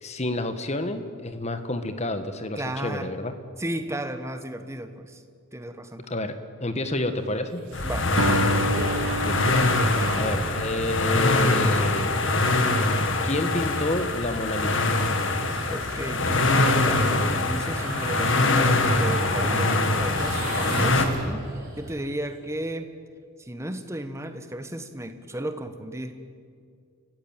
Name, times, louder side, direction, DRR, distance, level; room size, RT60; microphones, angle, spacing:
voice 1, 0.0-3.4 6.1-6.3 6.6-7.6 9.2-9.6 10.2-12.1 13.2-14.9, left 1 dB, 30° left, 9 dB, 1.4 m, -29 dB
voice 2, 2.6-3.1 3.6-5.2 5.5-6.1 7.8-8.1 15.7-22.9 23.4-26.1, right 1 dB, 15° right, 8 dB, 1.3 m, -34 dB
sound 1, 7.1-22.1, right 2 dB, 40° right, 5.4 m, -39 dB
sound 2, 7.7-21.1, left 2 dB, 55° left, 2.0 m, -23 dB
Acoustic guitar, 8.2-12.6, right 2 dB, 65° right, 1.0 m, -31 dB
29.5 x 15.0 x 9.1 m, 2.3 s
head